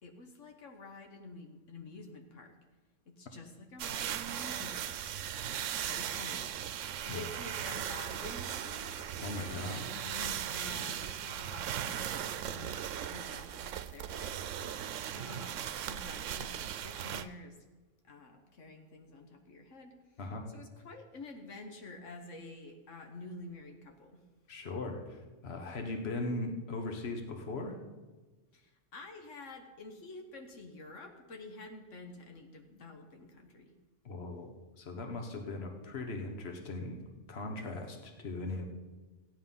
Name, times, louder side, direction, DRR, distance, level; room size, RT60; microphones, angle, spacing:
voice 1, 0.0-2.6 3.1-5.0 5.7-14.5 15.1-17.6 18.0-19.9 20.5-24.2 28.5-33.7, left 2 dB, 85° left, 4 dB, 1.6 m, -49 dB
sound 1, 3.8-17.2, right 10 dB, 85° right, 1.0 m, -38 dB
voice 2, 9.2-9.8 20.2-20.5 24.5-27.8 34.0-37.0 37.3-38.6, left 2 dB, 60° left, 4 dB, 1.6 m, -39 dB
15.0 x 10.0 x 5.6 m, 1.2 s
omnidirectional pair, 1.2 m